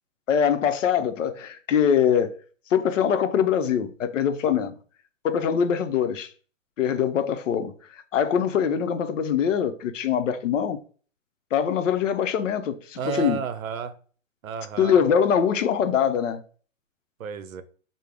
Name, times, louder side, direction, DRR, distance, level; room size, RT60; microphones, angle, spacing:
voice 1, 0.3-2.3 2.7-4.7 5.2-6.3 6.8-10.8 11.5-13.4 14.8-16.4, left 8 dB, 65° left, 0.6 m, -23 dB
voice 2, 13.0-13.9 14.4-15.0 17.2-17.6, right 6 dB, 80° right, 0.6 m, -32 dB
3.2 x 2.0 x 3.6 m
hypercardioid pair, 130°, 40 cm